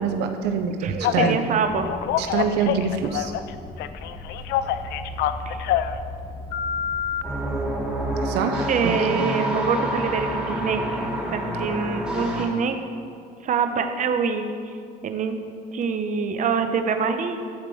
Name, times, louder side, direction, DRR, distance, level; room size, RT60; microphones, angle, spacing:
voice 1, 0.0-1.6 2.2-3.3 8.2-9.3, right 6 dB, 85° right, 6 dB, 0.7 m, -26 dB
voice 2, 0.8-1.9 5.5-5.7 8.7-12.8 13.4-14.5 15.0-15.4 15.7-17.4, right 5 dB, 50° right, 6 dB, 1.0 m, -25 dB
Telephone, 1.0-1.4 1.9-3.5 3.8-6.0 6.5-7.2, left 11 dB, 80° left, 0.5 m, -25 dB
sound 1, 1.6-8.1, left 1 dB, 30° left, 1.6 m, -38 dB
sound 2, 7.2-12.5, right 1 dB, 5° right, 2.7 m, -27 dB
12.0 x 5.2 x 7.8 m, 2.3 s
cardioid pair, 110°, 17 cm